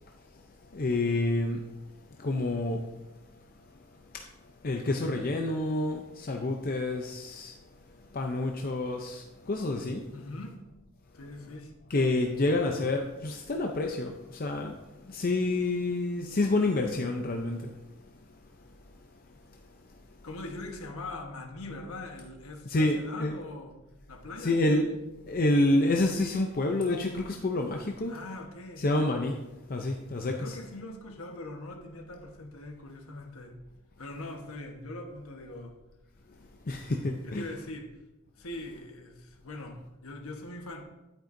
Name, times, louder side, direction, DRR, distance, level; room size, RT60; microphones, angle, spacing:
voice 1, 0.7-1.6 2.2-2.9 4.1-4.2 4.6-7.6 8.1-10.1 11.9-17.7 22.7-23.3 24.4-25.0 25.3-28.2 28.8-29.4 29.7-30.6 36.7-37.5, left 2 dB, 40° left, 2 dB, 0.6 m, -28 dB
voice 2, 10.1-10.6 11.1-11.7 20.2-23.7 24.1-24.6 28.1-28.8 30.4-33.6 34.0-35.7 37.2-37.9 38.4-40.8, left 2 dB, 70° left, 3 dB, 1.2 m, -42 dB
10.5 x 8.9 x 2.6 m, 1.0 s
head